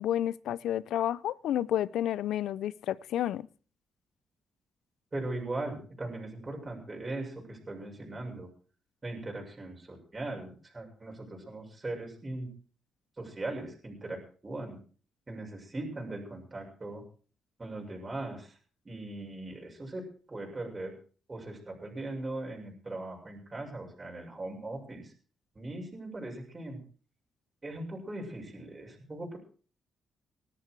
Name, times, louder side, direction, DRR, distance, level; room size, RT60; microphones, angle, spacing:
voice 1, 0.0-3.5, left 11 dB, 85° left, 0.6 m, -30 dB
voice 2, 5.1-8.5 9.0-12.5 13.2-14.8 15.3-17.0 17.6-18.5 18.9-20.9 21.3-25.1 25.6-26.8 27.6-29.4, right 2 dB, 25° right, 6.9 m, -39 dB
19.0 x 13.5 x 4.7 m
cardioid pair, 105°, 0 cm